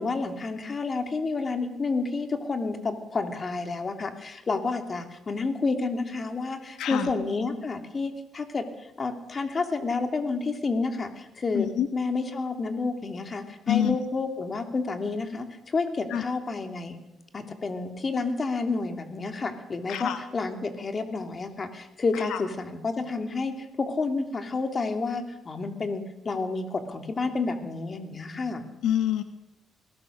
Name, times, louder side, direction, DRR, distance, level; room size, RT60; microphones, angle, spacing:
voice 1, 0.0-17.0 17.3-28.6, left 3 dB, 35° left, 6 dB, 3.0 m, -30 dB
voice 2, 6.8-7.1 11.5-11.9 13.7-14.0 16.1-16.2 19.9-20.2 22.3-22.4 28.8-29.2, left 11 dB, 80° left, 9 dB, 1.1 m, -26 dB
21.0 x 18.5 x 6.7 m, 0.93 s
cardioid pair, 90°, 0 cm